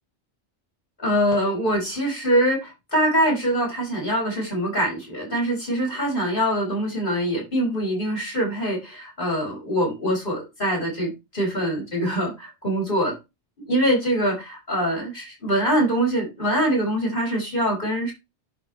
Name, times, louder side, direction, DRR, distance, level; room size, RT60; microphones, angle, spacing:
voice 1, 1.0-13.2 13.6-18.1, equal, 50° left, -3 dB, 5.4 m, -24 dB
11.0 x 4.0 x 4.5 m, 0.24 s
omnidirectional pair, 1.2 m